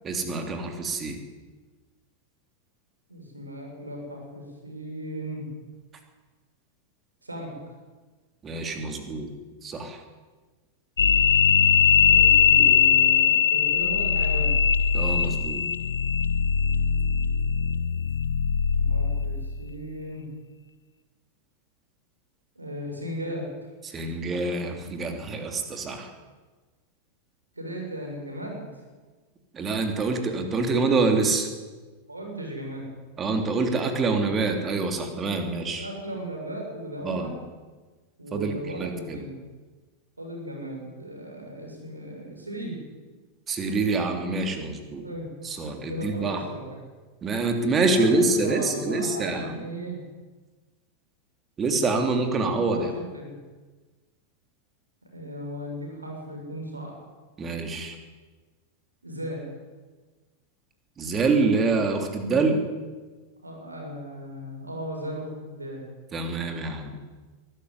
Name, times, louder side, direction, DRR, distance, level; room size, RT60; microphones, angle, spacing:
voice 1, 0.0-1.2 8.4-9.3 9.6-10.0 12.6-12.8 14.9-15.6 23.9-26.1 29.5-31.5 33.2-35.9 37.0-37.3 38.3-39.2 43.5-45.0 45.4-46.4 47.2-49.6 51.6-52.9 57.4-58.0 61.0-62.6 66.1-67.0, right 3 dB, 25° right, 5 dB, 3.2 m, -26 dB
voice 2, 3.1-5.5 7.2-7.5 12.1-14.5 18.7-20.2 22.5-23.7 27.5-28.8 32.1-32.8 35.8-37.3 38.2-39.3 40.2-42.8 44.9-45.3 45.9-46.6 47.6-50.0 52.7-52.9 53.1-53.3 55.1-56.9 59.0-59.4 63.4-65.8, equal, 80° right, 1 dB, 6.7 m, -36 dB
sound 1, 11.0-19.6, left 7 dB, 70° left, 1.2 m, -21 dB
22.5 x 13.0 x 9.8 m, 1.3 s
figure-of-eight pair, 90°, 0 cm